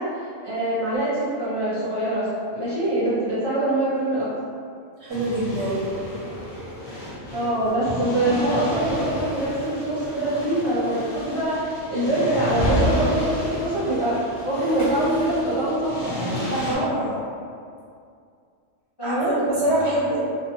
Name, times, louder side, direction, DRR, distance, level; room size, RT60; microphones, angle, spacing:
voice 1, 0.0-4.3 7.3-14.2 14.4-16.1 19.0-19.3, right 1 dB, 20° left, -13 dB, 0.9 m, -24 dB
voice 2, 5.0-5.8 16.5-17.1 19.0-20.2, right 1 dB, 65° right, -7 dB, 0.8 m, -24 dB
sound 1, 5.1-16.8, left 1 dB, 50° left, 0.4 m, -32 dB
Shatter, 12.4-15.9, right 1 dB, 70° left, 1.3 m, -29 dB
2.7 x 2.2 x 2.7 m, 2.3 s
omnidirectional pair, 1.3 m